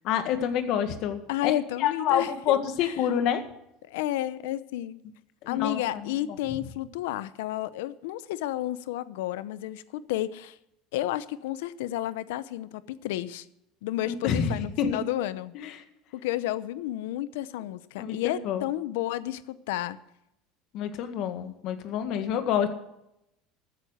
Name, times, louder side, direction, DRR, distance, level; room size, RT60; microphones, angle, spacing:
voice 1, 0.0-1.5 1.8-3.4 5.4-6.1 14.1-15.0 15.5-15.8 18.0-18.7 20.7-22.7, left 9 dB, 55° left, 8 dB, 1.7 m, -28 dB
voice 2, 1.3-2.9 3.9-5.0 5.5-10.6 10.9-13.5 13.8-15.6 16.1-20.0, left 14 dB, 90° left, 16 dB, 0.7 m, -31 dB
14.0 x 9.6 x 6.5 m, 0.83 s
supercardioid pair, 135°, 0 cm